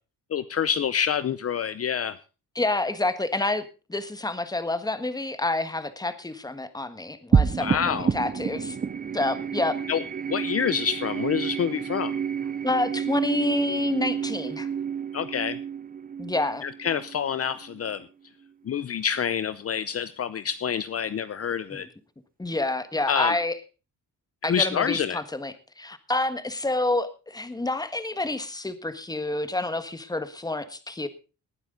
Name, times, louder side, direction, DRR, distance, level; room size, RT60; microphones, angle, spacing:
voice 1, 0.3-2.2 7.6-8.1 9.9-10.0 10.3-12.2 15.1-15.6 16.6-18.1 18.6-21.9 23.1-23.3 24.4-25.2, left 8 dB, 50° left, 14 dB, 0.7 m, -27 dB
voice 2, 2.5-8.8 9.1-9.8 12.6-14.7 16.2-16.6 21.7-21.8 22.4-23.6 24.4-31.1, left 2 dB, 10° left, 11 dB, 1.4 m, -28 dB
sound 1, 7.3-18.0, right 6 dB, 25° right, 0.6 m, -29 dB
19.5 x 9.5 x 3.8 m, 0.32 s
cardioid pair, 120°, 32 cm